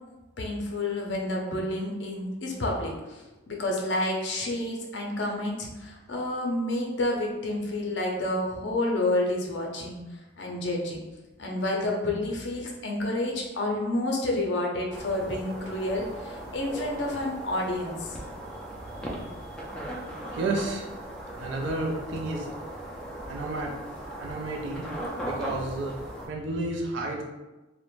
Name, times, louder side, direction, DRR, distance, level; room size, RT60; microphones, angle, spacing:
voice 1, 0.4-10.0 10.4-11.0 11.4-18.2, left 1 dB, 60° left, 0 dB, 0.5 m, -29 dB
sound 1, 14.9-26.3, right 1 dB, 5° left, 0.3 m, -38 dB
voice 2, 20.3-20.9 21.4-22.5 23.3-23.8 24.2-24.9 25.2-26.0 26.3-27.2, right 2 dB, 65° right, 0 dB, 0.4 m, -31 dB
2.5 x 2.1 x 3.0 m, 1.1 s
head